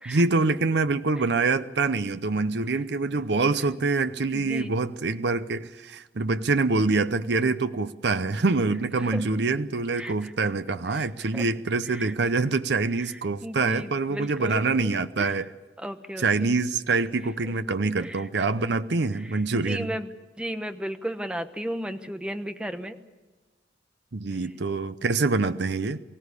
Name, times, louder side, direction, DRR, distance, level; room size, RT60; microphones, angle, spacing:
voice 1, 0.1-15.5 16.2-19.9 24.1-26.0, right 3 dB, 65° right, 12 dB, 0.7 m, -25 dB
voice 2, 4.3-4.7 9.0-9.2 10.0-10.5 10.9-11.5 11.9-12.1 13.0-13.1 13.4-14.9 15.2-15.4 15.8-16.5 17.4-17.5 18.0-18.2 18.6-18.7 19.1-20.1 20.4-23.0, equal, 5° right, 8 dB, 1.0 m, -35 dB
24.0 x 16.0 x 8.2 m, 1.2 s
head